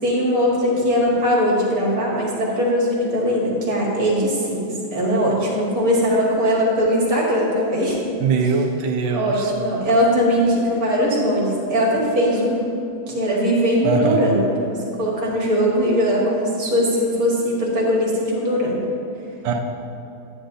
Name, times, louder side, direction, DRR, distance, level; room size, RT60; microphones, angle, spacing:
voice 1, 0.0-8.0 9.1-12.7 13.1-18.9, equal, 50° right, -4 dB, 1.9 m, -20 dB
voice 2, 8.2-9.5 13.8-14.3 19.4-19.6, right 4 dB, 75° right, 4 dB, 1.5 m, -21 dB
9.8 x 9.6 x 2.6 m, 2.7 s
omnidirectional pair, 2.2 m